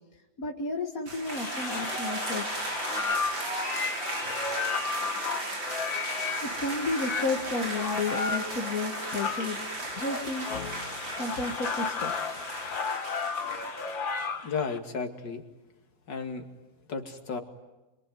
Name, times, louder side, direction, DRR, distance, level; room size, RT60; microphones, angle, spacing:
voice 1, 0.4-3.2 6.4-12.8, left 3 dB, 50° left, 0 dB, 2.2 m, -33 dB
sound 1, 1.1-14.3, right 2 dB, 90° right, 4.9 m, -36 dB
sound 2, 1.3-14.8, left 5 dB, 90° left, 2.3 m, -34 dB
voice 2, 14.4-15.4 16.1-16.4 16.9-17.4, left 5 dB, 70° left, 4 dB, 3.0 m, -33 dB
27.0 x 23.5 x 9.3 m, 1.1 s
omnidirectional pair, 2.0 m